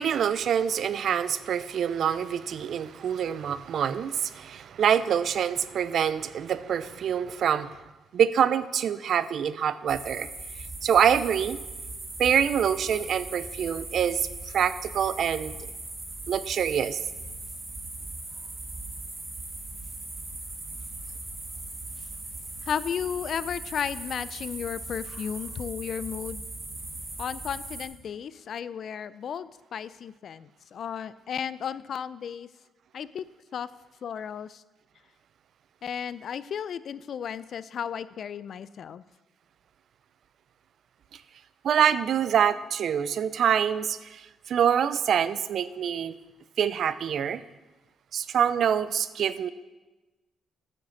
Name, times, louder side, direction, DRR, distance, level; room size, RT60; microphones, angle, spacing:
voice 1, 0.0-7.8 8.1-10.3 10.8-11.6 12.2-14.3 14.5-15.6 16.3-17.0 41.6-46.1 46.6-47.4 48.1-49.5, right 8 dB, 65° right, 15 dB, 0.5 m, -25 dB
sound 1, 9.9-27.9, right 2 dB, 30° right, 3.5 m, -39 dB
voice 2, 22.7-26.4 27.2-32.5 32.9-33.2 33.5-33.7 34.0-34.6 35.8-39.0, left 8 dB, 60° left, 17 dB, 0.4 m, -34 dB
9.0 x 6.6 x 7.1 m, 1.1 s
cardioid pair, 90°, 0 cm